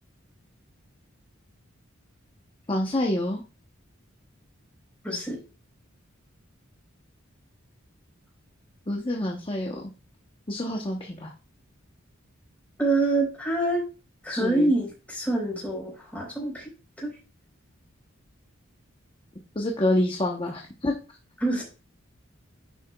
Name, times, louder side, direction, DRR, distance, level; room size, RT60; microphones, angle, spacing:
voice 1, 2.7-3.4 8.9-9.9 10.5-11.3 14.3-14.7 19.5-20.9, left 1 dB, 25° left, 1 dB, 0.8 m, -27 dB
voice 2, 5.0-5.4 12.8-13.8 14.2-16.7 17.0-17.1 21.4-21.6, right 2 dB, 5° left, -2 dB, 3.8 m, -26 dB
9.7 x 6.6 x 2.2 m, 0.33 s
head